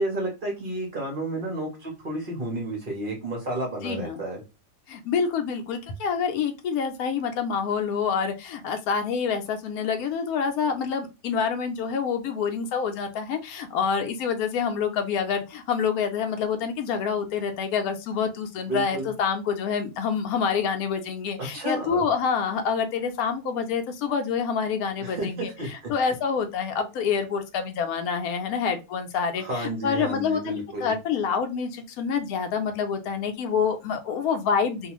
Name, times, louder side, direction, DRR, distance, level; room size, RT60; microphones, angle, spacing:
voice 1, 0.0-4.4 18.7-19.1 21.4-22.0 25.0-25.9 26.8-26.9 29.4-30.9, right 1 dB, 55° right, 0 dB, 0.6 m, -31 dB
voice 2, 3.8-4.2 4.9-25.5 25.9-34.9, left 6 dB, 70° left, 6 dB, 1.0 m, -27 dB
2.6 x 2.4 x 2.9 m, 0.27 s
omnidirectional pair, 1.8 m